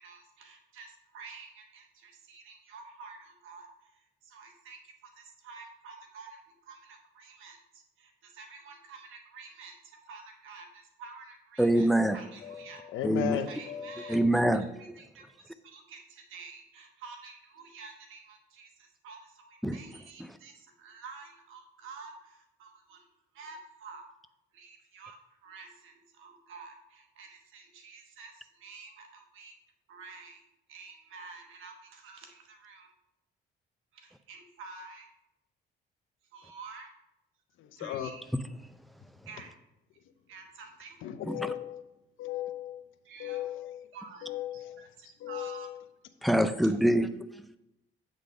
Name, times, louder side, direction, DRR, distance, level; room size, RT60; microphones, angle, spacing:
voice 1, 0.0-11.9 12.1-12.8 13.5-14.2 14.8-23.1 23.3-24.1 24.5-29.6 29.9-30.4 30.7-32.9 33.9-35.1 36.3-36.9 37.8-38.2 39.3-39.5 40.3-41.0 43.0-43.5 43.9-45.7, right 4 dB, 90° right, 1.2 m, -49 dB
voice 2, 11.6-12.2 13.0-13.4 14.1-15.0 19.6-19.8 20.2-20.3 41.3-41.5 46.2-47.1, right 1 dB, ahead, 0.4 m, -25 dB
voice 3, 12.4-14.3 37.6-38.1 41.0-41.8 42.2-42.8 43.2-43.9 44.2-44.9 45.2-45.8, left 11 dB, 80° left, 0.6 m, -37 dB
8.2 x 3.9 x 4.9 m
cardioid pair, 90°, 20 cm